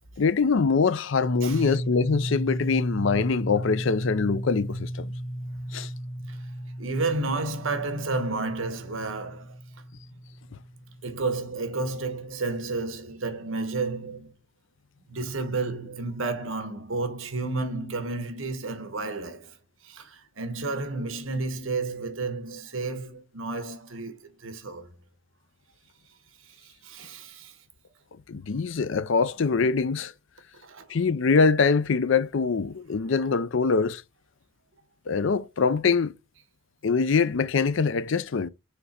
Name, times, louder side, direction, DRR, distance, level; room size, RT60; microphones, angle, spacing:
voice 1, 0.2-5.1 5.7-5.9 28.3-30.1 30.9-34.0 35.1-36.1 36.8-38.5, left 5 dB, 70° left, 0.5 m, -24 dB
sound 1, 1.2-11.8, equal, 30° left, 1.3 m, -34 dB
voice 2, 6.8-9.6 11.0-14.3 15.1-19.6 19.8-24.9 26.4-27.6 30.6-30.8, right 3 dB, 75° right, 1.1 m, -31 dB
7.1 x 3.3 x 4.2 m
head